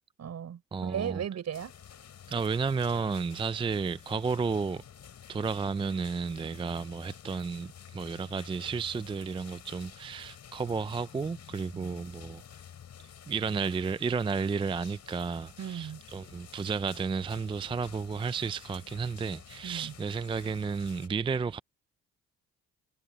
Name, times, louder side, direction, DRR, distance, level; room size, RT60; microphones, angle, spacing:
voice 1, 0.2-1.7 15.6-16.0 19.6-19.9, right 9 dB, 60° right, 5.7 m, -36 dB
voice 2, 0.7-1.2 2.3-4.8 5.3-12.4 13.3-21.6, right 5 dB, 15° right, 0.4 m, -32 dB
sound 1, 1.5-21.1, left 9 dB, 60° left, 6.4 m, -50 dB
cardioid pair, 90°, 30 cm